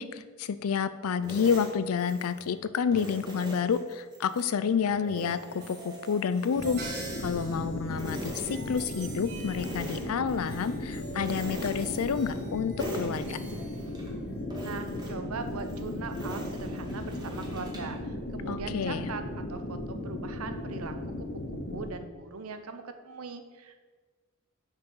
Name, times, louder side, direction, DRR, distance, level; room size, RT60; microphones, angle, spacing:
voice 1, 0.0-13.4 18.5-19.1, left 6 dB, 85° left, 14 dB, 0.4 m, -29 dB
sound 1, 1.2-2.5 2.9-4.5 4.9-7.6 7.9-9.2 9.5-10.7 11.2-12.5 12.8-14.1 14.5-18.0, equal, 20° right, 1.5 m, -43 dB
sound 2, 4.9-14.4, right 3 dB, 50° right, 1.4 m, -46 dB
sound 3, 6.6-21.9, left 1 dB, 50° left, 0.8 m, -36 dB
voice 2, 14.6-19.2 19.5-20.9 21.7-23.8, right 4 dB, 85° right, 8 dB, 0.7 m, -40 dB
5.8 x 5.6 x 5.5 m, 1.4 s
head